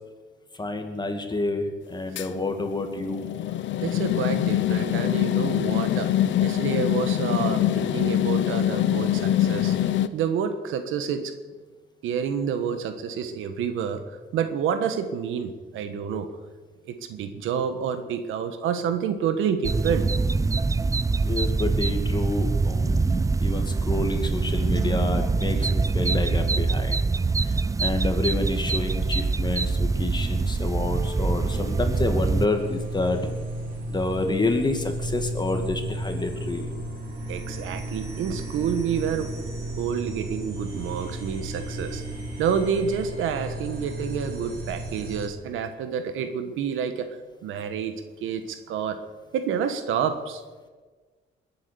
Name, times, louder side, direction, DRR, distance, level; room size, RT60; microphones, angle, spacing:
voice 1, 0.6-3.2 21.2-27.0 27.8-33.3 33.9-36.7, left 2 dB, 20° left, 5 dB, 2.4 m, -28 dB
sound 1, 2.2-10.1, left 12 dB, 70° left, 0.8 m, -24 dB
voice 2, 3.8-6.1 6.4-9.8 10.1-11.3 12.0-14.0 14.3-16.3 16.9-20.1 37.3-39.3 39.8-42.0 42.4-47.1 47.4-47.9 48.2-49.0 49.3-50.4, right 7 dB, 90° right, 9 dB, 1.4 m, -28 dB
sound 2, 19.6-32.5, right 4 dB, 15° right, 0.4 m, -24 dB
sound 3, 30.9-45.3, right 1 dB, 50° right, 4.4 m, -34 dB
21.0 x 8.9 x 7.0 m, 1.4 s
cardioid pair, 90°, 20 cm